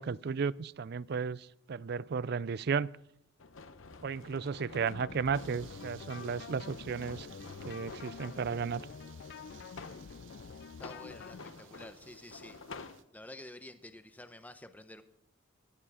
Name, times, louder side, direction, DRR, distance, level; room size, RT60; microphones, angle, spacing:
voice 1, 0.0-2.9 4.0-7.3 7.6-8.8, right 5 dB, 55° right, 0.4 m, -34 dB
sound 1, 3.4-8.4 9.3-10.1 10.7-13.0, left 4 dB, 80° left, 1.0 m, -50 dB
sound 2, 4.7-11.4, left 5 dB, 55° left, 0.4 m, -47 dB
sound 3, 5.3-13.0, right 7 dB, 70° right, 0.9 m, -57 dB
voice 2, 10.8-12.6 13.1-15.0, left 1 dB, 10° left, 0.8 m, -50 dB
16.5 x 11.5 x 4.9 m
head